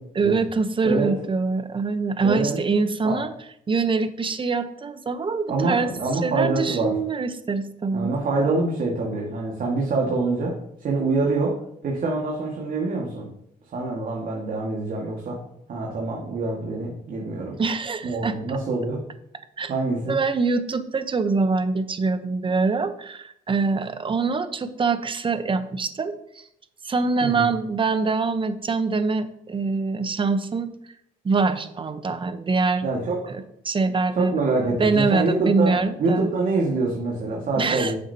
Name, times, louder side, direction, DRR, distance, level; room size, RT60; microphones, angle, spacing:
voice 1, 0.2-3.3 3.7-5.9 6.2-8.1 17.6-18.4 19.6-19.7 20.1-26.4 26.8-30.7 31.2-32.9 33.3-34.3 34.8-36.3 37.6-37.9, right 4 dB, 30° right, 11 dB, 0.8 m, -24 dB
voice 2, 2.2-2.6 3.0-3.2 5.5-7.0 7.9-11.6 11.8-13.3 13.7-15.4 15.7-17.6 18.0-19.0 19.7-20.2 27.2-27.5 32.8-33.2 34.2-38.0, right 3 dB, 60° right, -2 dB, 1.8 m, -25 dB
9.9 x 7.1 x 2.8 m, 0.74 s
cardioid pair, 75°, 16 cm